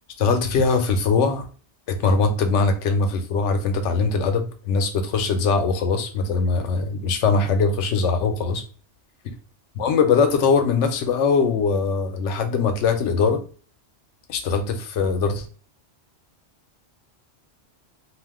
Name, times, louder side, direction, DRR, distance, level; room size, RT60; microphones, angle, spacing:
voice 1, 0.2-1.4 1.9-8.6 9.8-13.4 14.3-15.4, left 4 dB, 90° left, 7 dB, 0.9 m, -21 dB
2.5 x 2.1 x 3.4 m, 0.38 s
omnidirectional pair, 1.2 m